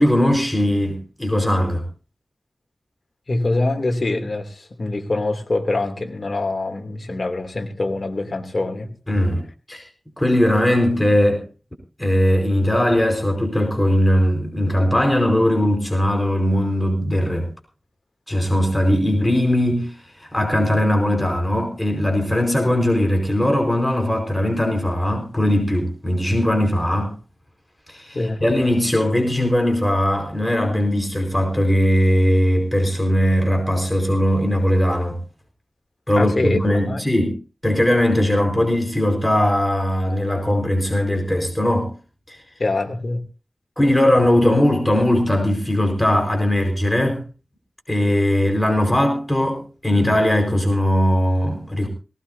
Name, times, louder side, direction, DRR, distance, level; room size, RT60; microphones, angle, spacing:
voice 1, 0.0-1.8 9.1-9.4 9.7-9.8 10.2-11.4 12.0-17.5 18.3-19.9 20.3-27.1 27.9-35.2 36.1-37.4 37.6-41.9 42.3-42.4 43.8-47.2 47.9-51.9, left 1 dB, 15° left, 3 dB, 4.8 m, -19 dB
voice 2, 3.3-8.9 28.1-28.4 36.1-36.6 36.9-37.0 42.6-43.2, left 2 dB, 60° left, 5 dB, 3.0 m, -24 dB
18.5 x 18.5 x 2.8 m, 0.34 s
wide cardioid pair, 55°, 0 cm